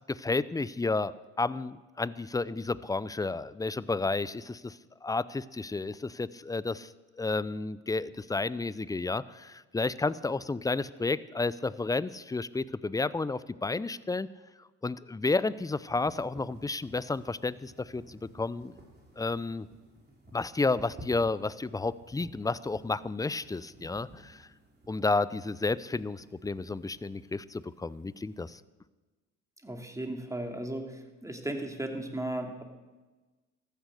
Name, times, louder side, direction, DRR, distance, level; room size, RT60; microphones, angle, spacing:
voice 1, 0.1-1.1 1.4-6.9 7.2-14.3 14.8-18.7 19.2-19.7 20.3-24.5 24.9-28.6, left 3 dB, 10° left, 18 dB, 0.5 m, -31 dB
sound 1, 15.3-28.6, right 1 dB, 30° right, 3.7 m, -54 dB
voice 2, 29.6-32.6, right 1 dB, 10° right, 3 dB, 2.6 m, -36 dB
14.0 x 10.5 x 6.5 m, 1.2 s
hypercardioid pair, 60°, 36 cm